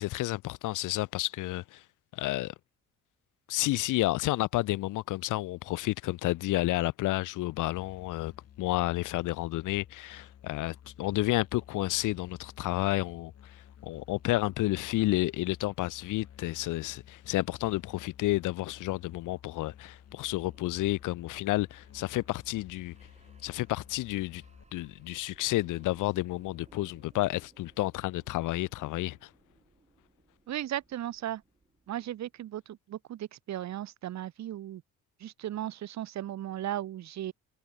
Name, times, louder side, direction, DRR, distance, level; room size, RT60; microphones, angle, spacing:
voice 1, 0.0-1.8 2.1-2.5 3.5-8.3 8.6-22.9 23.4-24.4 24.7-29.3, left 18 dB, 90° left, 1.0 m, -31 dB
Musical instrument, 7.7-24.6, left 9 dB, 55° left, 2.1 m, -54 dB
sound 1, 19.9-32.6, right 3 dB, 20° right, 6.5 m, -62 dB
voice 2, 30.5-31.4 31.9-34.8 35.2-37.3, right 12 dB, 65° right, 1.2 m, -36 dB
cardioid pair, 90°, 30 cm